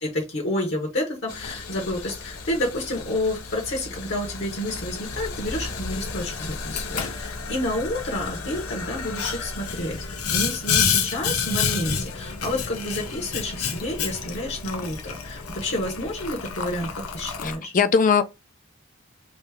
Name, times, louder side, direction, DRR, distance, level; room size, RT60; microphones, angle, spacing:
voice 1, 0.0-10.0 10.3-16.9 17.1-17.7, left 1 dB, 55° left, 1.1 m, -29 dB
Boiling, 1.3-17.6, left 6 dB, 85° left, 0.8 m, -30 dB
voice 2, 17.4-18.2, left 6 dB, 40° left, 0.4 m, -20 dB
3.1 x 2.8 x 3.3 m
head